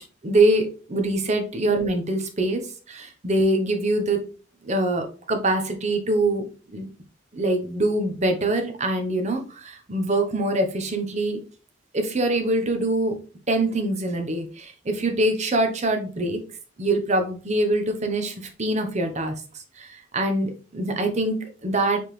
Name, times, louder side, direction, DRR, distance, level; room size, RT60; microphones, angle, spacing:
voice 1, 0.2-2.6 2.9-4.2 4.6-6.8 7.3-11.4 11.9-13.2 13.5-16.4 16.8-19.3 19.8-22.0, right 1 dB, 35° right, 5 dB, 0.8 m, -24 dB
4.7 x 3.6 x 3.1 m, 0.36 s
head